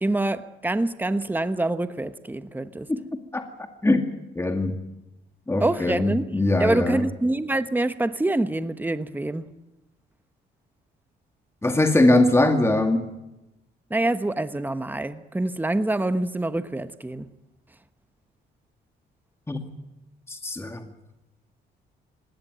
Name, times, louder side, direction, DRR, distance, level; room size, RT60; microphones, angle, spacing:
voice 1, 0.0-2.9 5.6-9.5 13.9-17.3, right 2 dB, 10° right, 1.1 m, -26 dB
voice 2, 4.4-4.8 5.5-7.0 11.6-13.1 19.5-19.6 20.3-20.8, left 2 dB, 15° left, 2.2 m, -21 dB
20.0 x 17.5 x 9.2 m
cardioid pair, 90°, 20 cm